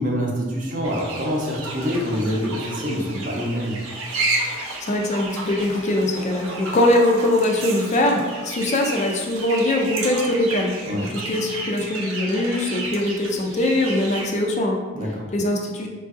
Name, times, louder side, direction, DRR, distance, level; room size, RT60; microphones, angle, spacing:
voice 1, 0.0-3.8 10.8-11.1 14.9-15.3, equal, 40° right, -2 dB, 0.6 m, -25 dB
sound 1, 0.8-14.4, right 2 dB, 85° right, 0.6 m, -32 dB
voice 2, 4.8-14.8 15.3-15.9, left 1 dB, 35° left, 1 dB, 0.3 m, -22 dB
4.5 x 2.5 x 2.4 m, 1.5 s
head